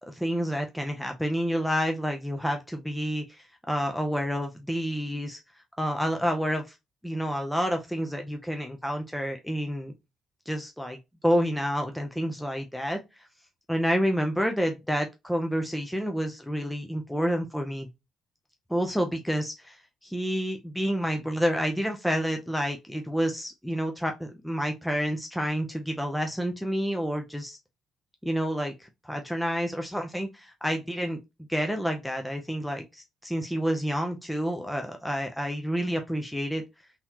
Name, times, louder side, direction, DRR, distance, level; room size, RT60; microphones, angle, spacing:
voice 1, 0.1-5.4 5.8-6.8 7.0-9.9 10.5-11.0 11.2-13.0 13.7-17.9 18.7-27.6 28.2-31.2 31.5-36.6, equal, ahead, 0.5 m, -29 dB
3.8 x 2.7 x 2.9 m
cardioid pair, 130°, 0 cm